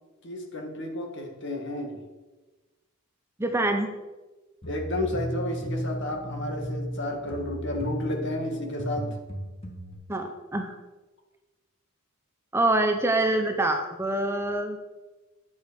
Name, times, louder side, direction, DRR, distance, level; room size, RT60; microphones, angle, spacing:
voice 1, 0.2-2.0 4.7-9.2, left 1 dB, 55° left, 3 dB, 1.8 m, -32 dB
voice 2, 3.4-3.9 10.1-10.7 12.5-14.8, right 2 dB, 10° right, 5 dB, 0.7 m, -25 dB
sound 1, 4.6-9.9, equal, 25° left, 1.2 m, -35 dB
9.5 x 7.2 x 5.1 m, 1.2 s
head